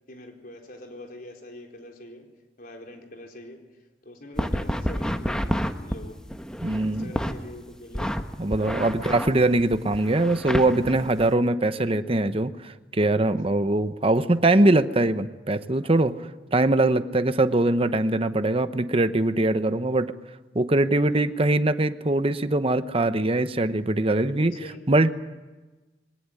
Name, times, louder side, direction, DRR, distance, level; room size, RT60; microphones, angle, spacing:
voice 1, 0.1-2.3 2.6-6.2 6.8-8.2 11.8-12.0 13.1-13.3 15.8-16.1 21.1-21.3 24.4-25.1, left 1 dB, 50° left, 2 dB, 4.2 m, -44 dB
sound 1, 4.4-7.4 7.9-11.3, equal, 5° left, 1.1 m, -29 dB
voice 2, 6.6-7.1 8.4-16.1 16.5-20.1 20.5-24.5 24.9-25.1, right 2 dB, 30° right, 11 dB, 0.9 m, -22 dB
23.0 x 18.0 x 9.9 m, 1.2 s
head